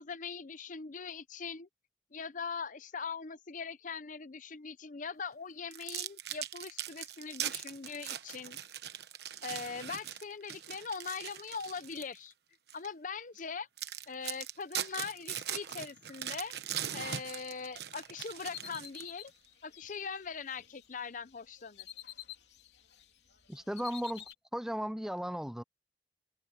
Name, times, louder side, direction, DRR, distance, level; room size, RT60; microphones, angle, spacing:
voice 1, 0.0-1.7 2.1-8.6 9.4-12.3 12.7-13.7 14.1-16.5 16.9-19.3 19.6-21.9, left 5 dB, 45° left, 0.7 m, -41 dB
sound 1, 5.7-12.2 12.7-12.9 13.4-13.5 13.8-19.3, right 10 dB, 65° right, 1.1 m, -40 dB
sound 2, 17.6-20.9 21.3-23.1 23.3-24.3, left 10 dB, 75° left, 3.1 m, -50 dB
voice 2, 23.5-25.6, equal, 5° right, 0.4 m, -36 dB
head